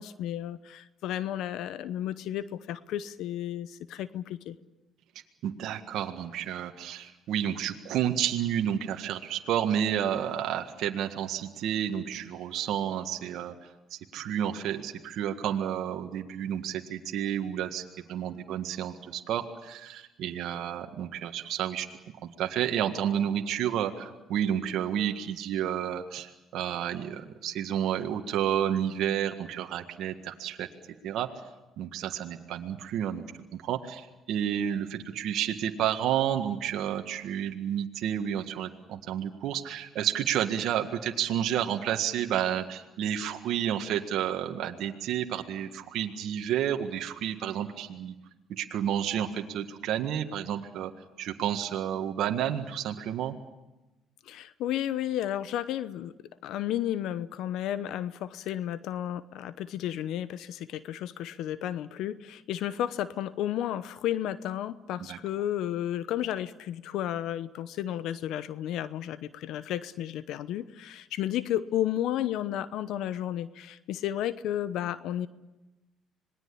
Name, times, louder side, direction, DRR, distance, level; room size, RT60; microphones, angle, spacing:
voice 1, 0.0-4.6 54.2-56.1 56.4-75.3, left 11 dB, 75° left, 15 dB, 0.9 m, -32 dB
voice 2, 5.4-17.8 18.1-21.9 22.2-30.7 31.0-31.3 31.8-33.2 33.5-48.1 48.5-50.9 51.2-53.3 65.1-65.2, right 10 dB, 75° right, 4 dB, 1.8 m, -30 dB
26.5 x 20.0 x 8.6 m, 1.1 s
supercardioid pair, 85°, 0 cm